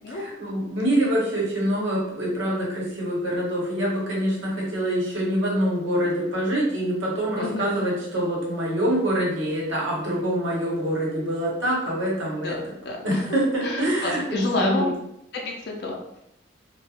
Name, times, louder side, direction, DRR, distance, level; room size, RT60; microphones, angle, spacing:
voice 1, 0.1-12.8 13.0-14.9, right 1 dB, 90° right, -4 dB, 0.9 m, -25 dB
voice 2, 7.4-7.9 12.4-13.2 13.6-14.9 15.3-16.2, left 2 dB, 55° left, 0 dB, 0.4 m, -29 dB
2.4 x 2.2 x 2.8 m, 0.80 s
head